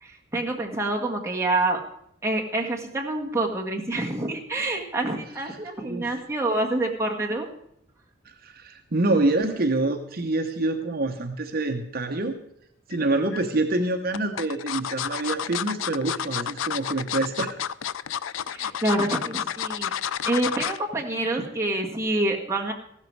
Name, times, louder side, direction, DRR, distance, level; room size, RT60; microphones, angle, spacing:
voice 1, 0.0-1.8 2.2-7.5 18.5-19.9 20.3-22.7, right 2 dB, 15° right, -1 dB, 1.7 m, -27 dB
voice 2, 8.2-12.4 12.9-17.6, right 2 dB, 50° right, 5 dB, 1.0 m, -26 dB
sound 1, 12.9-13.4 14.1-20.8 21.2-21.5 21.8-21.9, left 9 dB, 85° left, 0.4 m, -30 dB
15.0 x 13.0 x 4.7 m, 0.73 s
head